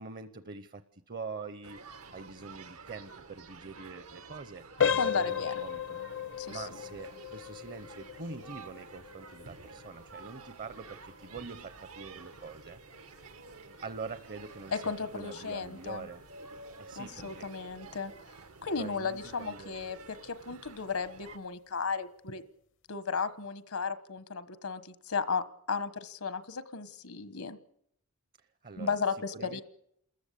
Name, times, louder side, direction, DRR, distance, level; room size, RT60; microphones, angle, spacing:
voice 1, 0.0-4.7 5.0-6.0 6.5-12.8 13.8-16.3 16.8-17.5 18.8-19.9 28.6-29.0 29.3-29.6, right 4 dB, 45° right, 12 dB, 0.8 m, -44 dB
sound 1, 1.6-21.4, right 4 dB, 85° right, 1.6 m, -51 dB
sound 2, 4.8-15.5 15.8-16.0 16.6-16.7 17.2-17.4, left 8 dB, 60° left, 0.8 m, -36 dB
voice 2, 4.9-5.5 6.4-6.7 14.7-16.1 17.0-18.1 18.6-22.4 22.9-27.6 28.8-29.6, left 5 dB, 80° left, 13 dB, 1.4 m, -34 dB
28.5 x 14.0 x 8.5 m, 0.74 s
head